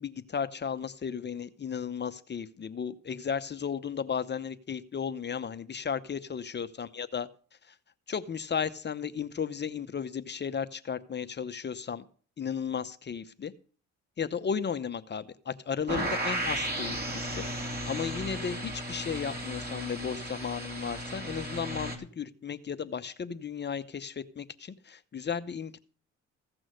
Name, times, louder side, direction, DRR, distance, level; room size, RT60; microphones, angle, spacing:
voice 1, 0.0-7.3 7.7-7.8 8.1-12.0 12.4-13.5 14.2-17.4 17.8-25.8, left 7 dB, 35° left, 11 dB, 0.8 m, -34 dB
sound 1, 15.9-22.0, right 1 dB, 30° right, 3.1 m, -34 dB
15.5 x 6.2 x 6.3 m, 0.42 s
cardioid pair, 90°, 30 cm